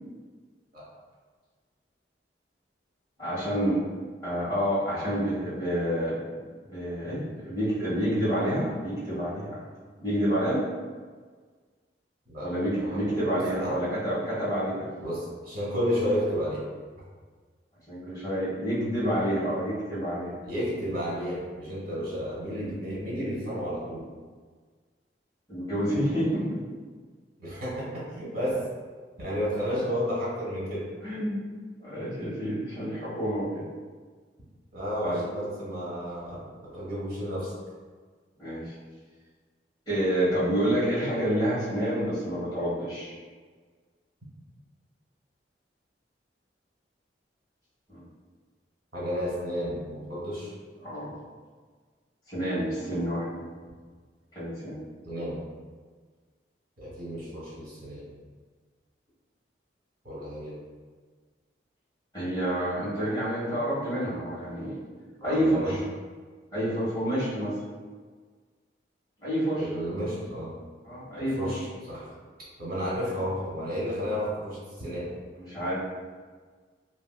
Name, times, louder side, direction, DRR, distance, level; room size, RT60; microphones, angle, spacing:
voice 1, 3.2-3.8 4.2-6.3 6.6-9.6 10.0-10.6 12.4-14.9 17.9-20.3 25.5-26.5 31.0-31.4 31.8-33.6 35.0-35.2 38.4-38.7 39.9-43.1 47.9-48.0 50.8-51.1 52.3-53.4 54.3-54.8 62.1-64.8 65.2-65.8 66.5-67.6 69.2-69.7 70.8-71.6 75.4-75.7, equal, 20° left, -11 dB, 1.4 m, -28 dB
voice 2, 12.8-13.8 15.0-16.6 20.4-24.0 27.4-28.6 29.2-30.8 34.7-37.5 48.9-50.5 55.0-55.4 56.8-58.1 60.0-60.5 65.2-65.8 69.6-70.5 71.1-71.6 71.9-72.1 72.6-75.1, equal, 55° right, -7 dB, 1.4 m, -32 dB
3.3 x 2.8 x 2.3 m, 1.5 s
head